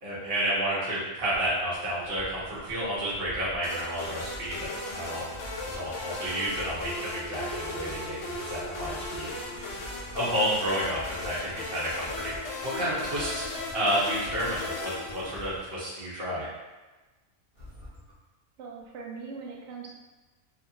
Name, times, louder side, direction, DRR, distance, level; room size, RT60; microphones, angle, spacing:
voice 1, 0.0-5.3 5.6-9.9 10.1-13.4 13.7-16.5, equal, 50° right, -8 dB, 1.2 m, -31 dB
sound 1, 1.3-15.7 17.5-18.1, left 1 dB, 15° left, 0.5 m, -46 dB
sound 2, 3.6-15.8, left 2 dB, 65° left, 0.9 m, -37 dB
voice 2, 18.6-20.0, right 4 dB, 65° right, 0 dB, 0.8 m, -41 dB
2.8 x 2.5 x 2.7 m, 1.2 s
omnidirectional pair, 1.4 m